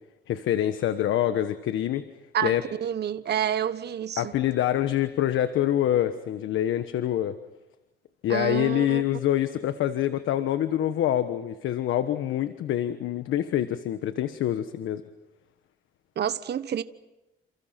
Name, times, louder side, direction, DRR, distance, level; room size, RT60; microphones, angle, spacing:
voice 1, 0.3-2.0 2.4-2.6 4.2-7.3 8.2-15.0, left 11 dB, 80° left, 1.3 m, -26 dB
voice 2, 2.3-4.3 8.3-9.0 16.2-16.8, right 9 dB, 55° right, 1.2 m, -28 dB
29.0 x 29.0 x 5.9 m
cardioid pair, 90°, 20 cm